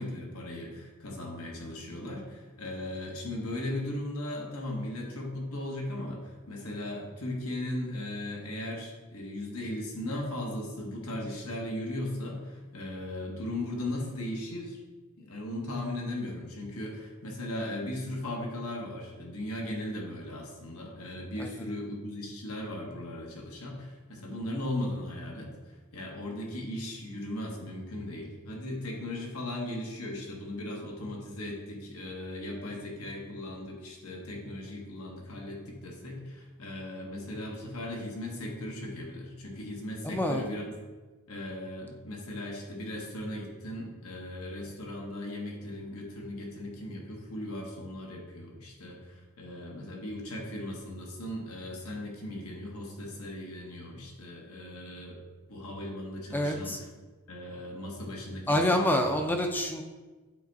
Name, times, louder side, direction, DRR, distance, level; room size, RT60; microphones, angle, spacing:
voice 1, 0.0-14.8 15.2-25.5 25.9-40.7 41.3-55.2 55.5-56.8 57.3-59.1, left 1 dB, 80° left, 0 dB, 1.4 m, -37 dB
voice 2, 21.4-21.7 40.0-40.4 56.3-56.8 58.5-59.8, left 1 dB, 10° left, 3 dB, 0.4 m, -27 dB
8.6 x 3.5 x 4.1 m, 1.3 s
head